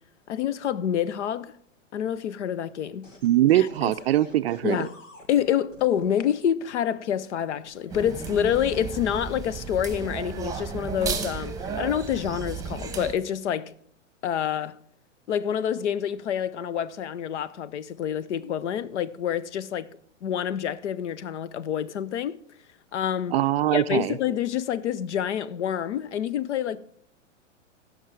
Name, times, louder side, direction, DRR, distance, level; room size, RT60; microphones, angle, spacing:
voice 1, 0.3-1.5 1.9-3.1 3.5-3.9 4.6-4.9 5.3-13.7 14.2-14.8 15.3-19.9 20.2-22.4 22.9-23.3 23.7-26.8, left 9 dB, 65° left, 0.7 m, -27 dB
sound 1, 3.0-6.4 7.4-9.0 9.7-10.0, left 2 dB, 80° left, 1.7 m, -50 dB
voice 2, 3.2-4.9 23.3-24.2, right 13 dB, 55° right, 0.5 m, -22 dB
sound 2, 7.9-13.1, right 5 dB, 10° right, 1.2 m, -33 dB
15.5 x 6.0 x 4.7 m
figure-of-eight pair, 105°, 38 cm